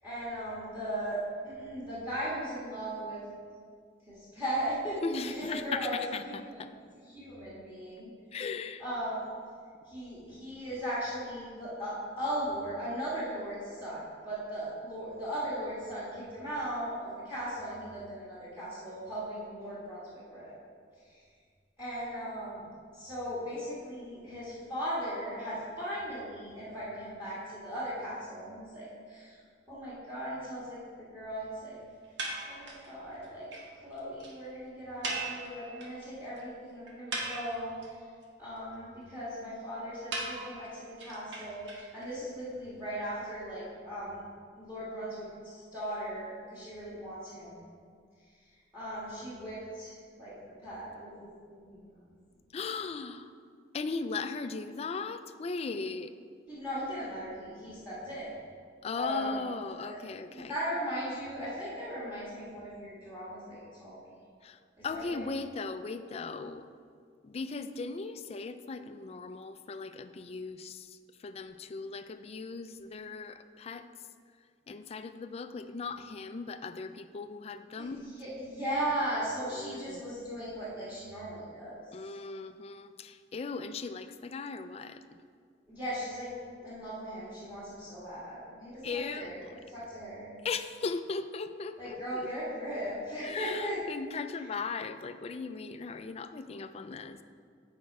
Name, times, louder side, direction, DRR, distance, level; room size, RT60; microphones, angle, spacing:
voice 1, 0.0-3.2 4.1-5.0 5.3-5.9 6.2-6.7 7.1-8.1 8.8-9.3 9.9-20.5 21.8-22.6 22.9-29.4 29.7-30.8 31.1-31.8 32.5-37.8 38.4-44.2 44.6-47.6 48.7-50.3 50.6-51.9 56.5-58.3 58.9-59.4 59.8-60.0 60.3-64.1 64.8-65.3 77.8-81.8 85.7-86.4 86.6-90.4 91.8-93.8, right 1 dB, 10° right, -9 dB, 1.9 m, -38 dB
voice 2, 5.0-6.7 8.3-8.8 52.5-53.3 53.7-56.1 58.8-60.5 64.4-66.7 67.2-70.9 71.2-73.9 74.7-78.0 79.5-80.0 81.9-85.0 88.8-89.5 90.4-92.3 93.2-97.2, left 4 dB, 35° left, 10 dB, 0.3 m, -38 dB
sound 1, 32.2-32.9 33.2-33.3 33.5-33.6 33.9-34.0 34.2-34.3 35.0-36.0 36.4-36.5 36.9-37.9 40.1-42.1, right 2 dB, 85° right, 1.3 m, -38 dB
8.4 x 5.2 x 4.7 m, 2.1 s
head